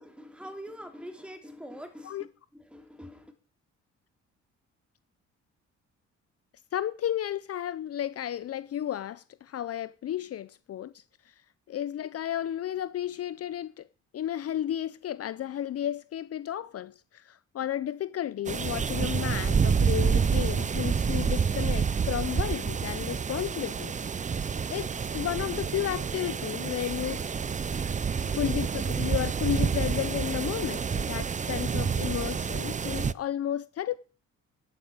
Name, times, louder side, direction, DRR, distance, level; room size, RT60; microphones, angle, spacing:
voice 1, 0.0-3.3, equal, 5° right, 3.2 m, -44 dB
voice 2, 6.7-11.3 11.7-13.9 14.1-23.9 24.2-27.3 28.2-33.9, left 11 dB, 55° left, 0.6 m, -33 dB
sound 1, 18.5-33.1, right 6 dB, 25° right, 0.5 m, -28 dB
11.0 x 9.2 x 8.7 m
cardioid pair, 90°, 30 cm